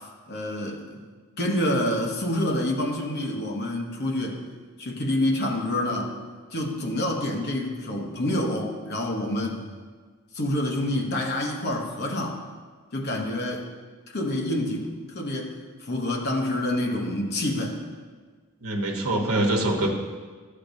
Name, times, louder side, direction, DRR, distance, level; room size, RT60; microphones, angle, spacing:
voice 1, 0.3-1.0 1.4-4.4 4.8-6.1 6.5-9.6 10.3-12.4 12.9-13.7 14.1-15.5 15.8-17.8, left 1 dB, 45° left, 0 dB, 0.9 m, -27 dB
voice 2, 18.6-19.9, right 1 dB, 75° right, 0 dB, 1.1 m, -25 dB
11.5 x 6.6 x 2.7 m, 1.5 s
head